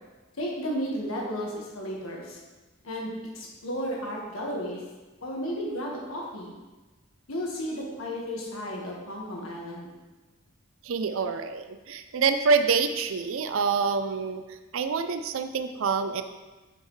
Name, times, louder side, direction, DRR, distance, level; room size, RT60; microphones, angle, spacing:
voice 1, 0.4-2.4 2.8-4.8 5.2-6.5 7.3-9.9, equal, 85° left, -2 dB, 1.5 m, -33 dB
voice 2, 10.8-14.4 14.7-16.2, right 5 dB, 75° right, 9 dB, 0.4 m, -26 dB
9.4 x 5.6 x 3.2 m, 1.2 s
head